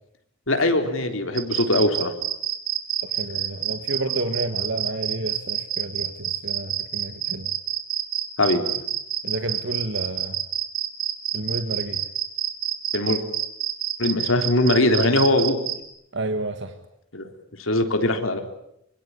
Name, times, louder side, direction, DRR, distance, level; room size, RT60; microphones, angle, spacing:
voice 1, 0.5-2.1 8.4-8.6 12.9-13.2 14.0-15.6 17.1-17.3 17.6-18.4, left 1 dB, 80° left, 6 dB, 3.8 m, -21 dB
sound 1, 1.4-15.8, right 11 dB, 85° right, 3.4 m, -27 dB
voice 2, 3.0-7.5 9.2-10.4 11.3-12.0 16.1-16.8, right 2 dB, 60° right, 8 dB, 1.7 m, -30 dB
25.0 x 24.0 x 9.7 m, 0.77 s
head